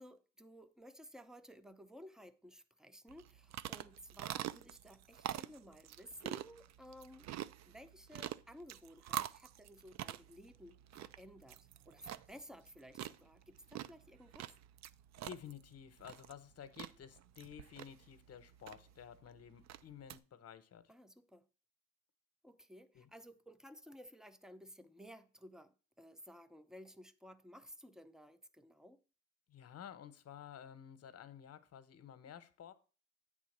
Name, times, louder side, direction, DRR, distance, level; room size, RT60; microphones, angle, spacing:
voice 1, 0.0-7.3 7.7-14.5 20.9-21.4 22.4-29.0, equal, ahead, 0.6 m, -56 dB
sound 1, 3.1-20.2, right 12 dB, 60° right, 0.4 m, -46 dB
voice 2, 15.2-20.9 22.9-23.1 29.5-32.7, left 9 dB, 55° left, 0.9 m, -53 dB
8.6 x 3.7 x 6.6 m
cardioid pair, 90°, 30 cm